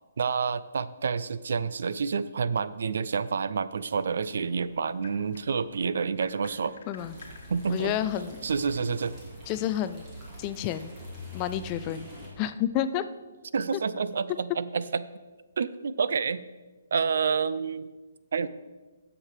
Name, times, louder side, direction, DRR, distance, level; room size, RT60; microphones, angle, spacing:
voice 1, 0.2-6.8 7.5-8.0 8.4-9.1 13.5-15.1 15.6-16.5 16.9-17.9 18.3-18.5, right 5 dB, 65° right, 15 dB, 0.4 m, -28 dB
sound 1, 3.7-8.8, left 4 dB, 55° left, 1.4 m, -52 dB
sound 2, 7.0-12.3, left 1 dB, 15° right, 2.3 m, -44 dB
voice 2, 7.7-8.4 9.5-10.1 10.4-10.9 11.3-12.1 12.4-13.1, left 11 dB, 20° left, 12 dB, 0.3 m, -30 dB
9.6 x 7.4 x 4.9 m, 1.3 s
hypercardioid pair, 170°, 0 cm